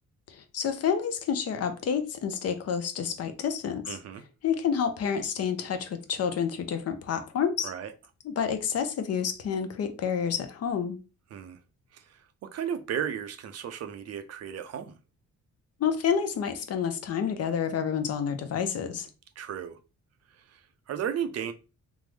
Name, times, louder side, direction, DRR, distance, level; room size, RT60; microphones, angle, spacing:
voice 1, 0.3-4.0 4.4-7.7 8.2-11.0 15.8-19.1, left 7 dB, 55° left, 0.6 m, -29 dB
voice 2, 3.9-4.2 7.6-7.9 11.3-11.6 11.9-15.0 19.4-19.8 20.4-21.5, right 8 dB, 55° right, 0.5 m, -35 dB
3.5 x 2.0 x 3.2 m
cardioid pair, 90°, 30 cm